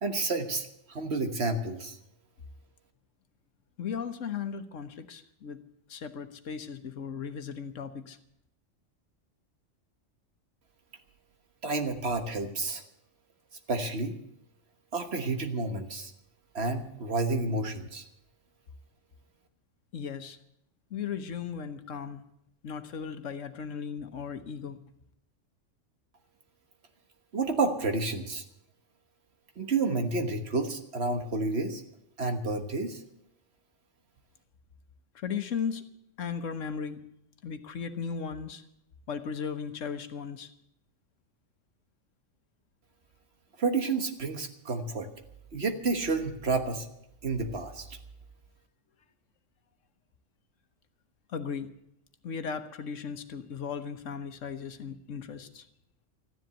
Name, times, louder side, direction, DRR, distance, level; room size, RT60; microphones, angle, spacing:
voice 1, 0.0-2.0 11.6-12.8 13.7-14.2 14.9-16.1 16.5-18.1 27.3-28.4 29.6-31.8 32.2-33.0 43.6-45.1 45.5-46.9 47.2-47.9, right 3 dB, 60° right, 6 dB, 1.6 m, -30 dB
voice 2, 3.8-5.6 5.9-8.2 19.9-20.4 20.9-22.2 22.6-24.8 35.1-35.9 36.2-37.0 37.4-38.6 39.1-40.5 51.3-51.7 52.2-55.7, left 6 dB, 80° left, 9 dB, 1.4 m, -36 dB
14.0 x 10.5 x 8.1 m, 0.78 s
omnidirectional pair, 1.3 m